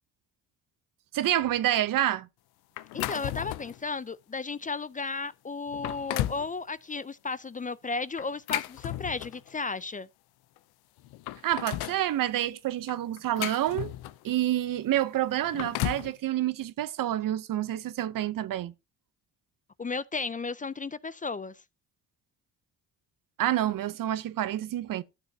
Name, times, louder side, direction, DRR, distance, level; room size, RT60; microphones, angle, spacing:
voice 1, 1.1-2.3 11.4-13.9 14.2-18.7 23.4-25.0, right 13 dB, 60° right, 0.7 m, -28 dB
sound 1, 2.8-3.8 4.4-4.5 5.2-5.3 5.7-6.5 8.2-9.5 10.6-10.7 11.0-12.0 12.9-14.3 15.3-16.1, left 15 dB, 85° left, 0.6 m, -34 dB
voice 2, 2.9-10.1 19.8-21.6, left 4 dB, 20° left, 0.5 m, -34 dB
12.5 x 7.0 x 2.8 m
supercardioid pair, 65°, 37 cm